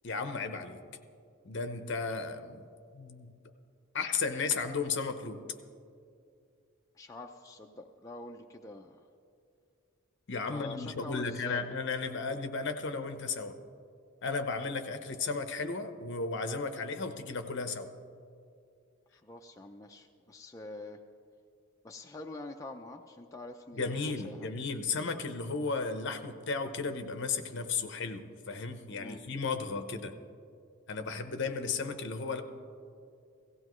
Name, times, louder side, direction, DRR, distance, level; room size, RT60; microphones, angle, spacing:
voice 1, 0.0-0.8 1.4-2.6 2.9-3.3 3.9-5.4 10.3-13.6 14.2-17.9 23.8-30.2 30.9-32.4, left 4 dB, 55° left, 8 dB, 0.8 m, -34 dB
voice 2, 6.9-9.1 10.5-11.6 19.1-21.0 21.8-24.5 29.0-29.2, left 2 dB, 15° left, 3 dB, 0.4 m, -45 dB
17.0 x 15.0 x 3.1 m, 2.4 s
head